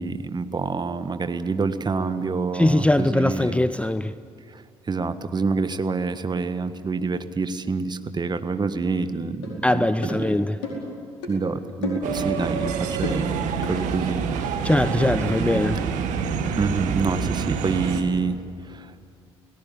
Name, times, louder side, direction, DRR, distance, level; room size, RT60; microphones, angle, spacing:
voice 1, 0.0-3.7 4.5-9.8 10.2-10.4 11.3-13.4 13.6-14.2 16.5-18.3 18.6-18.9, right 4 dB, 30° right, 10 dB, 1.6 m, -27 dB
voice 2, 2.5-4.1 9.6-10.6 14.4-15.8, left 1 dB, 10° left, 14 dB, 0.7 m, -21 dB
sound 1, 9.4-9.5 10.0-10.2 10.6-10.9 11.2-11.4 11.8-12.1 12.4-12.6 13.0-13.3 13.6-13.8, left 4 dB, 75° left, 4.6 m, -31 dB
sound 2, 12.0-18.0, right 6 dB, 65° right, 1.9 m, -27 dB
29.0 x 18.0 x 8.6 m, 2.3 s
figure-of-eight pair, 45°, 14 cm